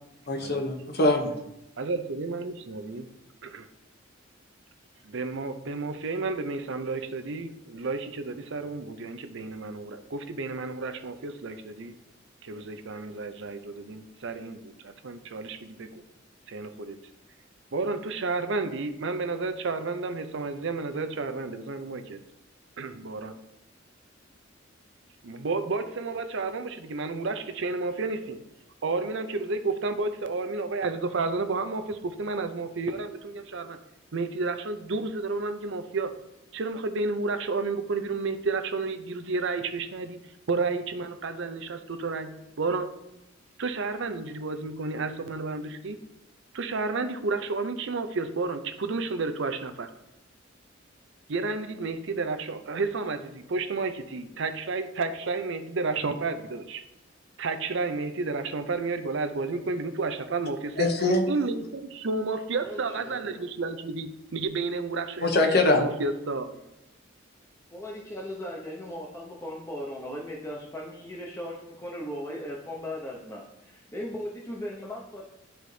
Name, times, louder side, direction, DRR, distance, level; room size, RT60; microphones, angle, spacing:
voice 1, 0.3-1.3 60.8-61.2 65.2-65.8, left 2 dB, 55° left, 4 dB, 1.0 m, -23 dB
voice 2, 1.8-3.1 3.4-3.7 5.0-12.0 12.4-16.0 16.5-17.0 17.7-22.2 22.8-23.3 25.2-28.4 28.8-33.8 34.1-36.1 36.5-40.2 40.5-42.9 43.6-46.0 46.5-49.9 51.3-56.8 57.4-60.9 61.3-66.5, right 3 dB, 65° right, 9 dB, 0.6 m, -31 dB
voice 3, 62.6-63.4 67.7-75.2, left 1 dB, 15° left, -2 dB, 0.7 m, -38 dB
11.5 x 4.0 x 3.3 m, 0.88 s
head